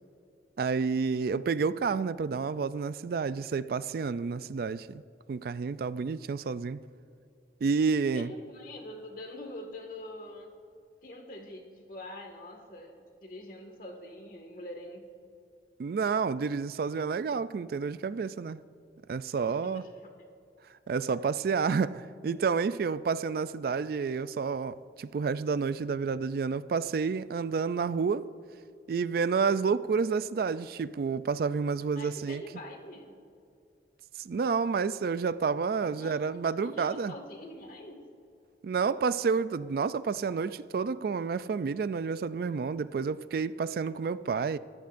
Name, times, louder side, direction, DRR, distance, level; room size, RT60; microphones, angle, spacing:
voice 1, 0.6-5.0 5.3-6.8 7.6-8.3 15.8-18.6 19.1-19.8 20.9-28.3 28.9-32.4 34.2-37.1 38.6-44.6, right 5 dB, 55° right, 0.3 m, -30 dB
voice 2, 8.1-10.5 11.0-15.1 19.5-20.1 21.2-21.3 31.9-33.2 35.9-38.1, left 1 dB, 50° left, 1.8 m, -45 dB
25.0 x 14.0 x 2.6 m
head